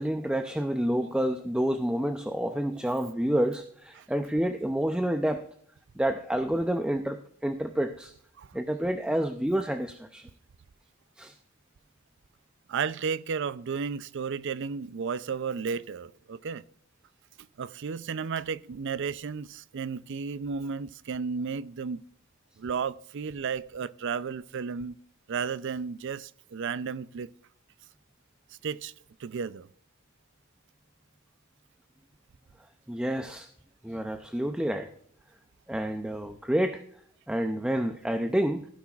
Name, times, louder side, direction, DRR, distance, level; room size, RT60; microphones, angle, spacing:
voice 1, 0.0-5.4 6.0-8.1 8.5-10.3 11.2-11.3 32.9-33.5 33.8-34.9 35.7-36.8 37.3-38.7, right 1 dB, 5° right, 0.5 m, -29 dB
voice 2, 12.7-16.6 17.6-22.0 22.6-25.0 25.3-27.3 28.6-28.9 29.2-29.7, right 6 dB, 60° right, 0.4 m, -33 dB
15.5 x 10.5 x 2.4 m
head